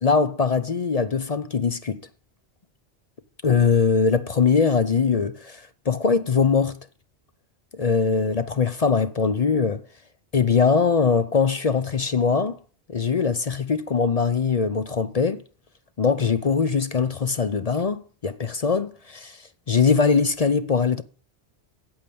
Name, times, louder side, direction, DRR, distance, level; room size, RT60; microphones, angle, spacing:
voice 1, 0.0-2.0 3.4-6.8 7.8-9.8 10.3-12.6 12.9-15.4 16.0-21.0, left 5 dB, 40° left, 0.6 m, -22 dB
8.7 x 8.1 x 8.6 m
omnidirectional pair, 1.1 m